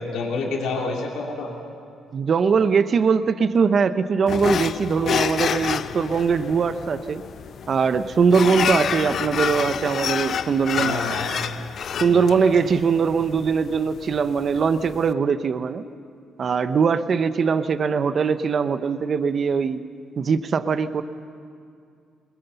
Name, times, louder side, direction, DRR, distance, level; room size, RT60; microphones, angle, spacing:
voice 1, 0.0-1.5 10.7-11.3 11.9-12.4, left 4 dB, 80° left, 0 dB, 2.7 m, -28 dB
voice 2, 2.1-7.2 7.7-11.0 12.0-15.9 16.4-19.8 20.2-21.0, right 5 dB, 50° right, 12 dB, 0.8 m, -21 dB
sound 1, 4.3-15.1, left 8 dB, 60° left, 0.5 m, -29 dB
21.5 x 20.5 x 6.9 m, 2.3 s
cardioid pair, 90°, 0 cm